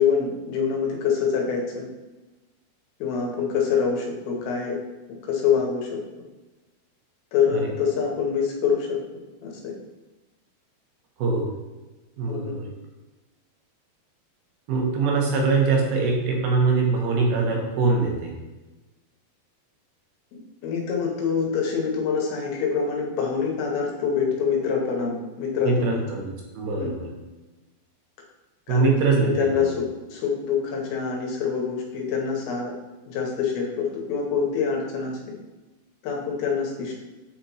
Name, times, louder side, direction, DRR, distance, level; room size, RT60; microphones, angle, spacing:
voice 1, 0.0-1.9 3.0-4.8 5.3-6.0 7.3-9.0 9.4-9.7 12.3-12.6 20.6-26.0 26.8-26.9 28.7-29.0 29.2-32.7 33.0-35.1 36.0-36.9, left 6 dB, 75° left, 0 dB, 2.8 m, -25 dB
voice 2, 12.2-12.7 14.7-18.3 25.6-27.1 28.7-29.7, right 4 dB, 75° right, 0 dB, 2.8 m, -23 dB
8.4 x 4.2 x 3.0 m, 1.1 s
omnidirectional pair, 4.5 m